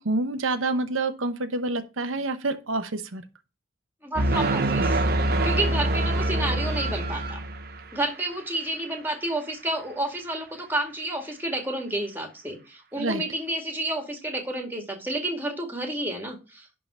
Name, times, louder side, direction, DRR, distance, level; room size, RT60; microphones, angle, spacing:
voice 1, 0.0-3.2 13.0-13.2, right 2 dB, 85° right, 1.0 m, -27 dB
voice 2, 4.0-7.4 7.9-16.7, right 1 dB, 10° right, 2.1 m, -30 dB
sound 1, 4.2-8.0, right 1 dB, 50° right, 1.0 m, -25 dB
11.0 x 3.8 x 6.8 m
head